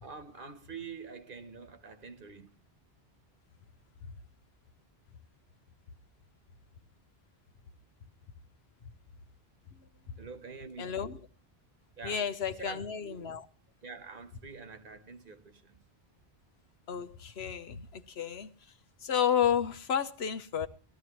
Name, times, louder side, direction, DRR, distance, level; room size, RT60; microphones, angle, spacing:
voice 1, 0.0-2.5 10.2-11.0 12.0-13.3 13.8-15.7, right 5 dB, 55° right, 1.3 m, -46 dB
voice 2, 10.8-11.2 12.0-13.4 16.9-18.5 19.0-20.7, left 8 dB, 85° left, 1.2 m, -31 dB
19.5 x 13.5 x 3.0 m
omnidirectional pair, 1.0 m